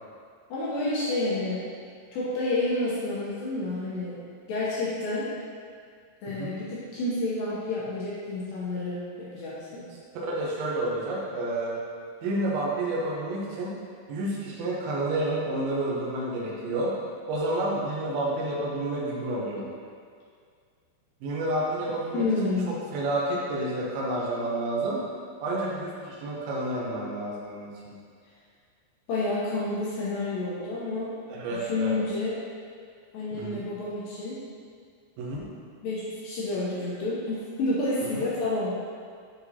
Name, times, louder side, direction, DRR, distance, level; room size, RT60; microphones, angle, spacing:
voice 1, 0.5-1.6 2.1-4.2 4.5-5.3 6.2-9.8 22.1-22.7 29.1-31.1 31.5-32.4 33.1-34.4 35.8-38.7, left 2 dB, 80° left, -8 dB, 2.1 m, -29 dB
voice 2, 10.3-11.8 12.2-13.7 14.1-16.9 17.3-19.7 21.2-25.0 25.4-28.0 31.3-32.0 33.4-33.6 35.2-35.4 38.1-38.3, right 1 dB, 75° right, -5 dB, 2.4 m, -30 dB
9.3 x 4.1 x 2.8 m, 2.1 s
omnidirectional pair, 5.1 m